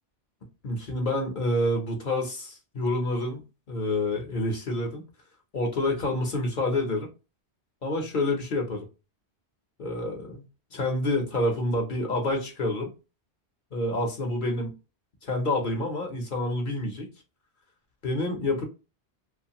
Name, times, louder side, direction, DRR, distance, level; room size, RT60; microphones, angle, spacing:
voice 1, 0.6-5.0 5.5-7.1 7.8-8.9 9.8-10.4 10.7-12.9 13.7-14.8 15.2-17.1 18.0-18.6, left 1 dB, 50° left, 0.9 m, -28 dB
2.8 x 2.5 x 2.7 m
omnidirectional pair, 1.1 m